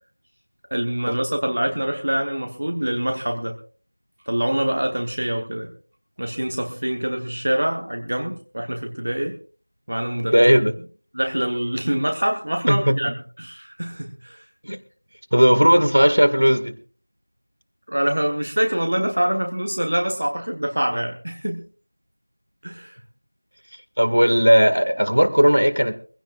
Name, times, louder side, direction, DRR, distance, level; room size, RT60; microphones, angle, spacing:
voice 1, 0.7-3.5 4.3-5.7 6.2-9.4 9.9-10.3 11.1-14.4 17.9-21.6 22.6-23.0, right 1 dB, 25° right, 2 dB, 1.1 m, -25 dB
voice 2, 10.3-10.7 12.7-13.1 14.6-14.8 15.3-16.8 24.0-25.9, equal, 70° right, 9 dB, 2.0 m, -16 dB
22.5 x 16.0 x 2.5 m, 0.40 s
figure-of-eight pair, 180°, 0 cm